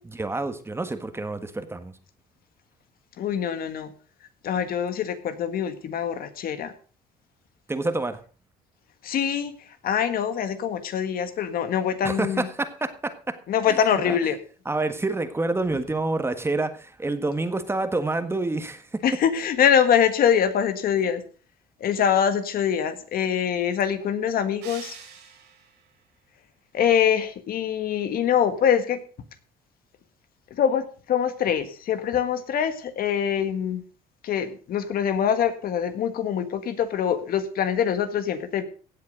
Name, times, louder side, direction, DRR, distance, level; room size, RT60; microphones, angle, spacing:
voice 1, 0.2-2.0 7.7-8.2 12.0-13.4 13.6-14.2 14.6-19.0, right 2 dB, 15° right, 9 dB, 1.5 m, -28 dB
voice 2, 3.2-3.9 4.4-6.7 9.0-9.5 9.8-12.5 13.5-14.4 19.0-21.2 21.8-25.0 26.7-29.0 30.6-33.8 34.2-38.6, left 8 dB, 60° left, 10 dB, 1.6 m, -24 dB
sound 1, 24.6-25.9, right 7 dB, 85° right, 6.1 m, -44 dB
16.5 x 7.6 x 5.2 m, 0.39 s
cardioid pair, 110°, 17 cm